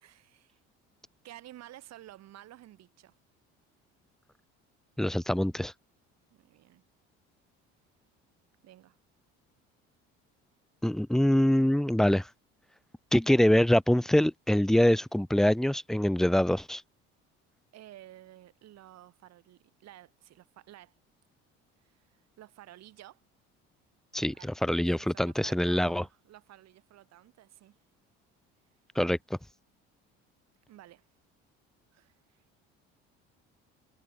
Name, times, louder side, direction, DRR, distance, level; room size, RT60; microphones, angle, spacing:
voice 1, 0.0-0.6 1.2-3.2 6.3-6.8 8.6-9.0 17.7-21.0 21.8-23.2 24.3-24.5 25.0-27.8 30.7-31.0 31.9-32.6, right 14 dB, 60° right, 1.9 m, -52 dB
voice 2, 5.0-5.7 10.8-12.3 13.1-16.8 24.1-24.3 24.6-26.0 29.0-29.2, left 1 dB, ahead, 0.5 m, -24 dB
supercardioid pair, 80°, 30 cm